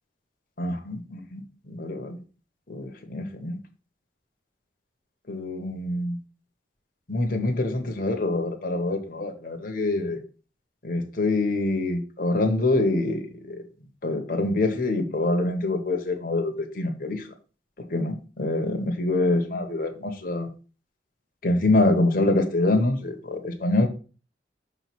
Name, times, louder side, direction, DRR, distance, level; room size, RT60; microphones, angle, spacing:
voice 1, 0.6-1.4 1.7-2.2 2.7-3.6 5.3-6.2 7.1-10.2 10.8-13.2 13.5-13.6 14.0-17.2 17.9-20.5 21.4-23.9, left 2 dB, 50° left, 3 dB, 1.0 m, -25 dB
6.2 x 3.1 x 5.9 m, 0.36 s
head